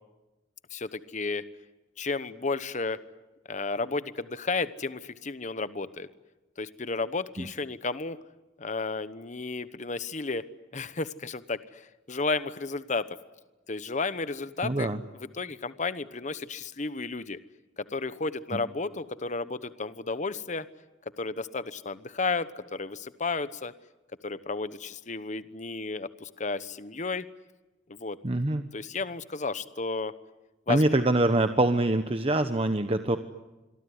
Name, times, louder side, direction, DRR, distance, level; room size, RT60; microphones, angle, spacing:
voice 1, 0.7-1.5 2.0-3.0 3.5-6.1 6.6-8.2 8.6-10.4 10.7-11.8 12.1-13.1 13.7-17.4 17.8-20.7 21.2-23.7 24.2-27.2 27.9-28.2 28.7-30.1 30.7-30.9, left 3 dB, 40° left, 14 dB, 1.0 m, -32 dB
voice 2, 14.6-15.0 18.5-18.6 28.2-28.6 30.7-33.2, right 2 dB, 30° right, 8 dB, 1.1 m, -24 dB
27.0 x 23.0 x 9.5 m, 1.1 s
head